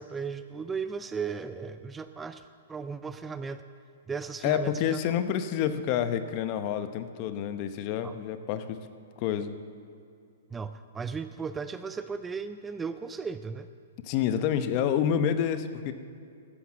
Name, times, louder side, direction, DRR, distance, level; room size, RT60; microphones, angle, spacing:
voice 1, 0.0-3.6 4.1-5.2 8.0-8.1 10.5-13.7, right 5 dB, 10° right, 11 dB, 0.4 m, -36 dB
voice 2, 4.4-8.8 9.2-9.6 14.0-15.9, left 9 dB, 40° left, 10 dB, 0.9 m, -28 dB
13.5 x 11.5 x 7.5 m, 2.5 s
hypercardioid pair, 140°, 0 cm